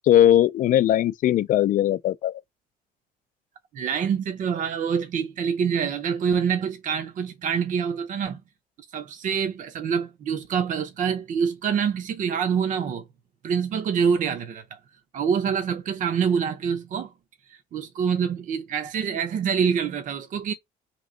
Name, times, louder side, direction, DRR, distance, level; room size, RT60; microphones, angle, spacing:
voice 1, 0.1-2.3, left 12 dB, 55° left, 0.4 m, -19 dB
voice 2, 3.7-8.4 8.9-13.1 13.4-14.8 15.1-17.1 17.5-20.5, right 7 dB, 50° right, 0.7 m, -26 dB
3.0 x 2.8 x 3.7 m
cardioid pair, 110°, 17 cm